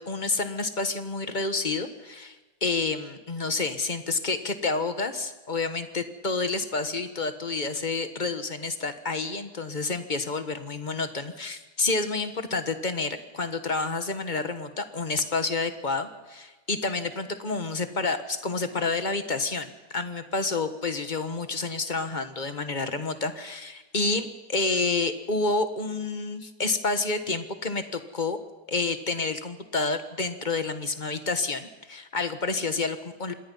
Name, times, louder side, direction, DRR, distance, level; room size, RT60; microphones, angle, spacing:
voice 1, 0.0-28.4 28.7-33.3, left 3 dB, 30° left, 9 dB, 1.4 m, -29 dB
26.5 x 20.5 x 5.6 m, 1.2 s
omnidirectional pair, 1.7 m